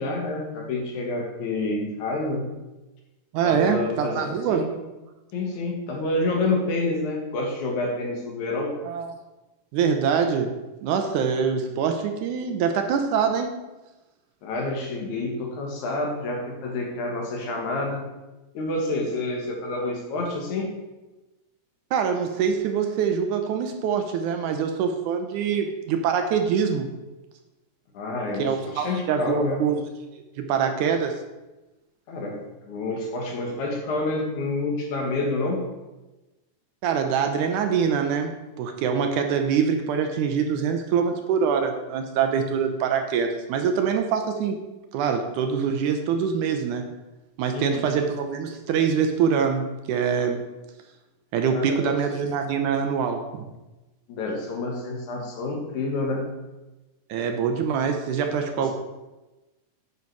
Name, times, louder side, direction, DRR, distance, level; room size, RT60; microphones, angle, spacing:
voice 1, 0.0-2.4 3.4-4.7 5.3-8.7 14.4-18.0 18.5-20.7 27.9-29.6 32.1-35.6 47.5-47.9 51.5-51.9 54.1-56.2 58.6-58.7, left 2 dB, 65° left, 0 dB, 2.7 m, -28 dB
voice 2, 3.3-4.6 8.8-9.2 9.7-10.5 10.8-13.5 21.9-26.9 28.4-29.8 30.1-31.2 36.8-44.6 44.9-46.9 47.4-50.4 51.3-53.4 57.1-58.7, right 6 dB, 75° right, 5 dB, 2.0 m, -24 dB
9.6 x 5.6 x 4.6 m, 1.1 s
omnidirectional pair, 3.9 m